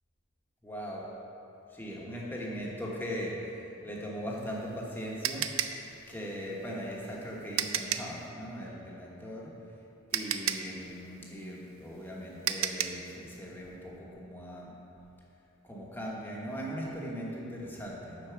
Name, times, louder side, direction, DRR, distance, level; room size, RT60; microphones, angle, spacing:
voice 1, 0.6-1.1 1.7-5.8 6.1-9.6 10.1-14.8 15.6-18.3, equal, 10° left, -4 dB, 1.2 m, -39 dB
sound 1, 4.3-8.2 9.6-9.7 10.1-13.1, right 10 dB, 75° right, 0.4 m, -33 dB
9.2 x 4.5 x 5.8 m, 2.8 s
head